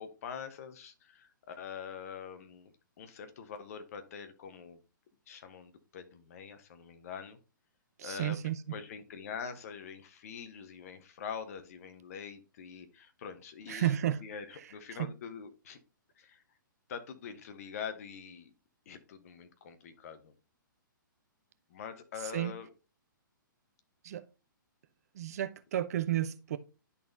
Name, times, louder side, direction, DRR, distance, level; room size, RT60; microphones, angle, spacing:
voice 1, 0.0-4.8 5.3-7.4 8.0-8.4 8.7-14.0 14.2-15.8 16.2-16.4 16.9-18.5 18.9-20.3 21.7-22.7, left 7 dB, 45° left, 1.0 m, -44 dB
voice 2, 8.0-8.8 13.7-14.2 15.0-15.1 22.3-22.5 24.0-24.2 25.1-26.6, right 12 dB, 50° right, 0.5 m, -32 dB
11.0 x 4.1 x 2.7 m
figure-of-eight pair, 125°, 11 cm